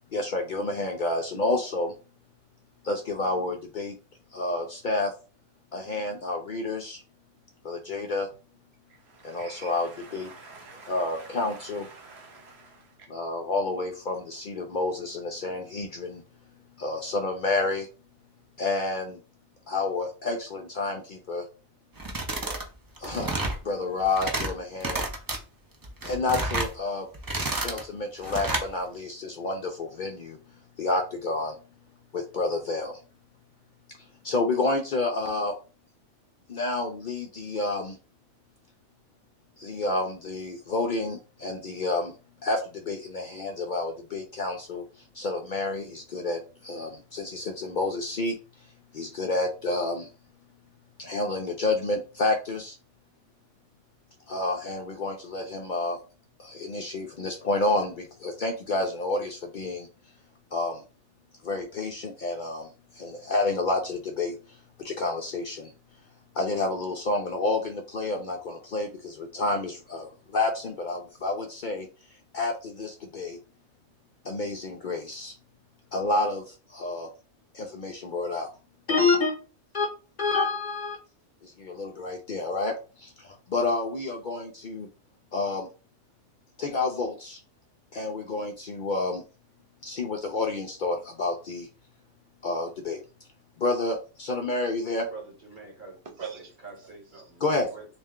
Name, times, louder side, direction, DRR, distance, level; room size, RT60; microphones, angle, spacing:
voice 1, 0.1-1.9 2.8-3.9 4.3-5.1 5.7-7.0 7.6-8.3 9.2-10.3 10.9-11.9 13.1-16.2 16.8-17.9 18.6-19.2 19.7-21.5 23.0-23.3 23.6-25.0 26.0-27.1 27.5-30.4 30.8-31.6 32.1-33.0 34.2-35.5 36.5-38.0 39.6-42.1 42.4-44.8 45.1-48.4 48.9-50.1 51.0-52.7 54.3-56.0 56.4-59.9 60.5-60.8 61.4-64.4 64.8-65.7 66.4-71.9 72.3-73.4 74.2-75.3 75.9-77.1 77.5-78.5 78.9-79.4 79.7-79.9 80.2-81.0 81.4-84.9 85.3-85.7 86.6-87.4 87.9-89.2 89.8-91.7 92.4-93.0 93.6-95.1 97.4-97.7, left 3 dB, 55° left, 0.6 m, -29 dB
voice 2, 9.0-12.9 96.2-96.5, right 5 dB, 65° right, 1.1 m, -45 dB
sound 1, 22.0-22.7 23.0-23.6 24.0-24.5 24.8-25.4 25.8-26.7 27.1-27.8 28.2-28.7, right 2 dB, 30° right, 0.4 m, -30 dB
voice 3, 95.1-96.0 96.3-97.9, right 3 dB, 45° right, 1.3 m, -45 dB
3.2 x 2.5 x 3.5 m
omnidirectional pair, 1.2 m